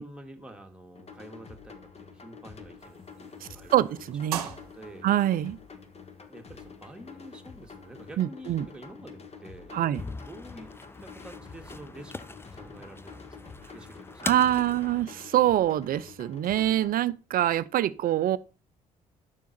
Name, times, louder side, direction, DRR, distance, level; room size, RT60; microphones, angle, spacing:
voice 1, 0.0-5.1 6.3-10.7 11.0-15.1, right 1 dB, 5° right, 2.2 m, -48 dB
sound 1, 0.9-16.9, left 5 dB, 35° left, 1.5 m, -48 dB
sound 2, 2.8-8.2, right 9 dB, 80° right, 0.8 m, -43 dB
voice 2, 3.4-4.4 5.0-5.6 8.2-8.7 9.7-10.0 14.2-18.4, right 12 dB, 50° right, 0.5 m, -25 dB
sound 3, 10.0-15.0, left 2 dB, 10° left, 0.6 m, -41 dB
10.5 x 6.9 x 4.4 m
figure-of-eight pair, 50°, 19 cm